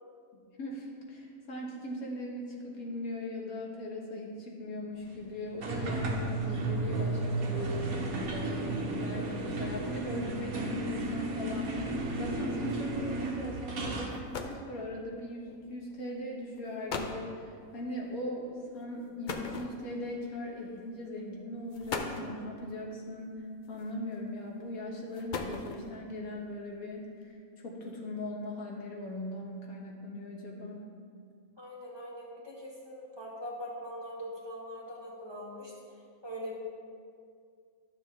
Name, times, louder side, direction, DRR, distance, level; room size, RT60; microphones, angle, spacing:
voice 1, 0.3-30.8, left 1 dB, 85° left, -1 dB, 1.7 m, -39 dB
sound 1, 5.6-14.2, right 2 dB, 90° right, 1.5 m, -33 dB
sound 2, 13.8-13.9 14.1-14.7 15.7-15.9 16.6-16.7 16.9-17.3 19.3-20.1 21.1-21.2 21.7-22.4 23.6-24.1 25.0-26.0, left 4 dB, 50° left, 0.6 m, -38 dB
voice 2, 31.6-35.7 36.2-36.6, equal, 20° right, -5 dB, 1.6 m, -42 dB
12.0 x 6.8 x 3.5 m, 2.2 s
omnidirectional pair, 1.5 m